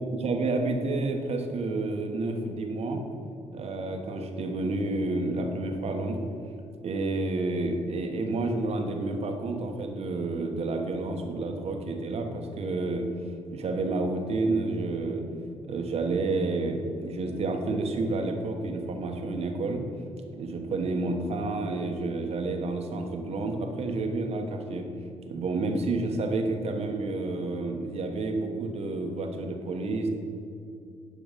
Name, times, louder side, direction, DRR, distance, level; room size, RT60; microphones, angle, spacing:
voice 1, 0.0-3.0 3.5-6.2 6.8-13.0 13.5-15.2 15.6-19.8 20.3-24.9 25.2-30.1, right 2 dB, 60° right, 4 dB, 1.3 m, -30 dB
11.5 x 5.0 x 5.2 m, 2.5 s
supercardioid pair, 70°, 12 cm